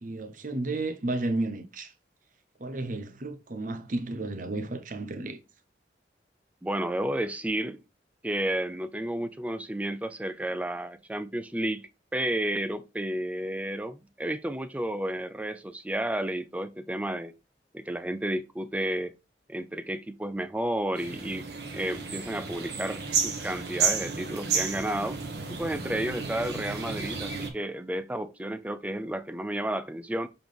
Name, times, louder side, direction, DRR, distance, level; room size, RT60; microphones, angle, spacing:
voice 1, 0.0-1.9 2.6-5.4, right 2 dB, 50° right, 0.9 m, -32 dB
voice 2, 6.6-7.8 8.2-11.8 12.1-17.3 17.7-19.1 19.5-25.2 25.6-30.3, right 1 dB, 10° right, 0.4 m, -32 dB
sound 1, 20.9-27.5, right 5 dB, 70° right, 1.4 m, -32 dB
6.9 x 3.9 x 3.5 m
head